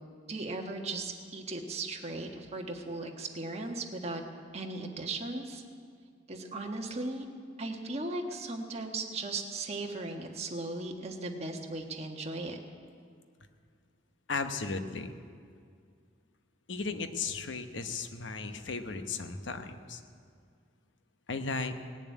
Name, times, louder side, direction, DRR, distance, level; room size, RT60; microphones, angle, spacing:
voice 1, 0.3-4.2 4.5-5.6 6.3-7.3 7.6-12.6, right 2 dB, 35° right, 2 dB, 1.4 m, -37 dB
voice 2, 14.3-15.1 16.7-20.0 21.3-21.8, left 4 dB, 75° left, 8 dB, 1.0 m, -35 dB
18.0 x 7.2 x 9.2 m, 2.1 s
head